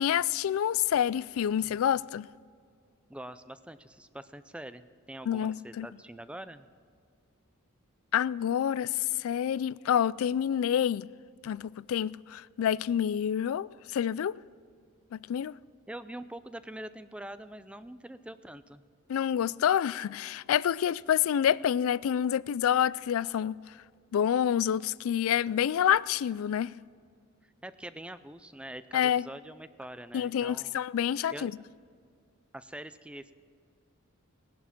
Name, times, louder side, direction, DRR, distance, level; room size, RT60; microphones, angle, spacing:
voice 1, 0.0-2.3 5.3-5.9 8.1-11.1 11.4-14.4 15.1-15.5 19.1-23.6 24.1-26.7 28.9-29.2 30.1-31.5, left 9 dB, 70° left, 0.3 m, -28 dB
voice 2, 3.1-6.7 15.9-18.8 27.4-30.8 31.3-31.5 32.5-33.3, right 1 dB, 5° right, 0.4 m, -44 dB
18.5 x 11.0 x 5.9 m
head